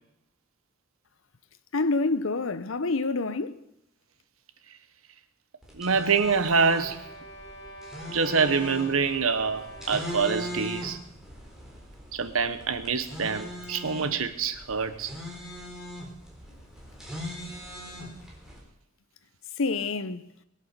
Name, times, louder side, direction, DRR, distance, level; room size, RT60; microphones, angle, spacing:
voice 1, 1.7-3.6 19.6-20.3, left 3 dB, 75° left, 0.8 m, -27 dB
sound 1, 5.6-18.6, equal, 5° right, 3.9 m, -40 dB
voice 2, 5.8-7.1 8.1-11.0 12.1-15.1, right 5 dB, 85° right, 1.2 m, -26 dB
sound 2, 6.4-10.5, right 1 dB, 20° left, 3.7 m, -45 dB
21.5 x 8.4 x 6.7 m
head